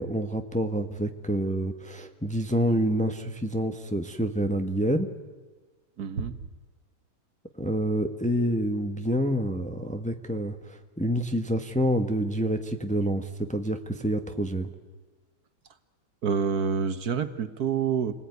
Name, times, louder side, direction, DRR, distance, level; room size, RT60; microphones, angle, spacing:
voice 1, 0.0-5.1 7.6-14.7, equal, 5° left, 6 dB, 1.2 m, -27 dB
voice 2, 6.0-6.4 16.2-18.1, right 6 dB, 60° right, 11 dB, 1.6 m, -27 dB
29.0 x 20.0 x 9.5 m, 1.4 s
omnidirectional pair, 1.9 m